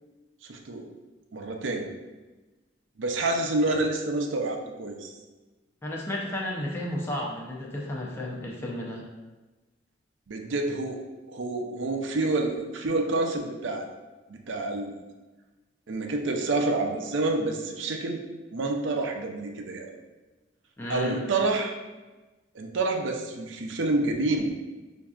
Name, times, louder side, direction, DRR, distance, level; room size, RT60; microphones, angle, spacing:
voice 1, 0.4-0.9 1.3-1.9 3.0-5.1 10.3-11.0 11.3-13.9 14.3-14.9 15.9-18.2 18.5-19.9 20.9-21.7 22.5-24.5, right 2 dB, 75° right, 3 dB, 0.5 m, -28 dB
voice 2, 5.8-9.0 20.8-21.2, left 1 dB, 10° left, -3 dB, 0.5 m, -32 dB
5.7 x 2.6 x 2.4 m, 1.2 s
head